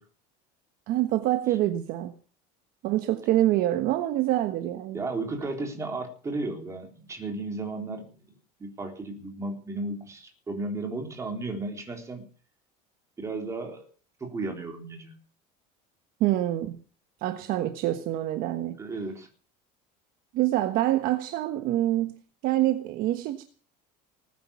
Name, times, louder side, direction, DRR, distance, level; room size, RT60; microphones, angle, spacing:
voice 1, 0.9-2.2 2.8-5.0 16.2-16.8 17.2-18.8 20.3-23.4, right 14 dB, 50° right, 1.3 m, -26 dB
voice 2, 4.9-8.1 8.6-12.2 13.2-13.9 14.2-15.2 18.8-19.3, right 2 dB, 15° right, 3.7 m, -34 dB
19.5 x 10.0 x 7.1 m
cardioid pair, 175°, 20 cm